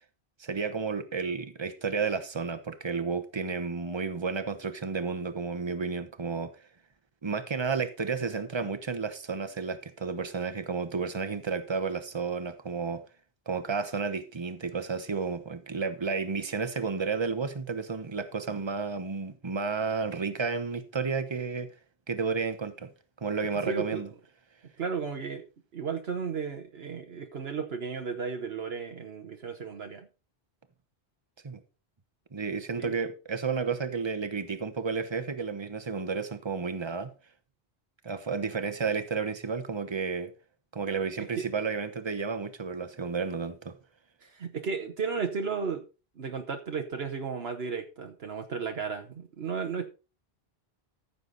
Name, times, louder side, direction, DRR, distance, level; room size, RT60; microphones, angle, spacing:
voice 1, 0.4-6.5 7.2-13.0 13.5-21.7 22.1-22.9 23.2-24.1 31.4-31.6 32.3-37.1 38.0-40.3 40.7-43.8, right 5 dB, 25° right, 1.1 m, -32 dB
voice 2, 23.7-24.0 24.8-25.4 25.7-30.1 32.8-32.9 41.2-41.5 44.2-45.8 46.2-49.9, right 5 dB, 75° right, 1.3 m, -34 dB
14.5 x 7.0 x 4.0 m
omnidirectional pair, 1.1 m